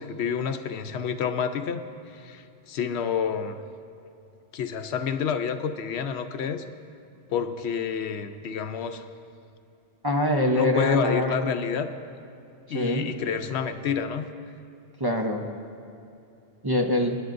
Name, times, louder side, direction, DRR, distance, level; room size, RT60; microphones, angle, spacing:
voice 1, 0.0-1.8 2.1-3.6 4.5-6.6 7.3-9.0 10.5-11.9 12.7-14.3, left 7 dB, 75° left, 9 dB, 0.9 m, -29 dB
voice 2, 10.0-11.5 12.7-13.1 15.0-15.4 16.6-17.2, left 1 dB, 25° right, 2 dB, 0.7 m, -24 dB
26.5 x 10.5 x 2.6 m, 2.8 s
omnidirectional pair, 1.1 m